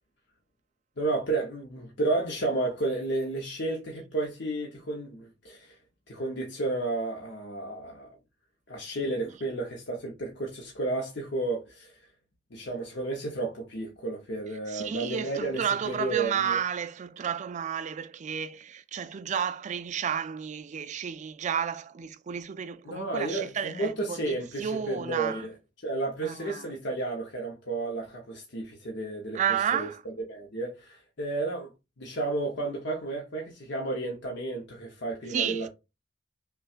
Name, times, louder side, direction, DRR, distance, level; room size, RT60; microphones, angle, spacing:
voice 1, 1.0-5.8 6.1-8.2 8.7-12.0 12.5-16.6 22.8-25.5 25.8-29.4 29.7-31.7 32.0-35.7, right 2 dB, 65° left, 0.8 m, -32 dB
voice 2, 14.7-25.5 26.2-26.7 29.3-30.0 35.3-35.7, right 8 dB, 40° right, 0.3 m, -32 dB
5.6 x 2.3 x 2.4 m
head